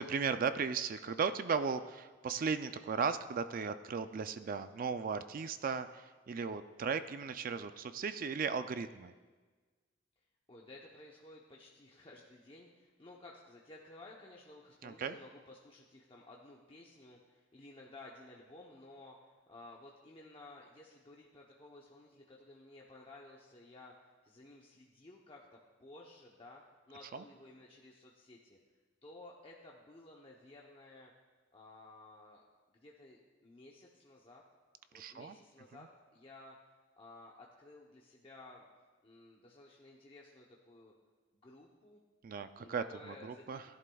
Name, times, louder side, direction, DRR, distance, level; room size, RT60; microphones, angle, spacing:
voice 1, 0.0-9.1 14.8-15.2 27.1-27.2 34.9-35.4 42.2-43.6, right 5 dB, 50° right, 10 dB, 0.4 m, -36 dB
voice 2, 10.5-28.6 29.0-31.1 31.5-32.4 32.7-34.4 34.9-36.6 37.0-38.7 39.0-40.9 41.3-42.0 42.5-43.6, left 2 dB, 30° left, -2 dB, 0.8 m, -55 dB
16.0 x 11.0 x 2.3 m, 1.4 s
head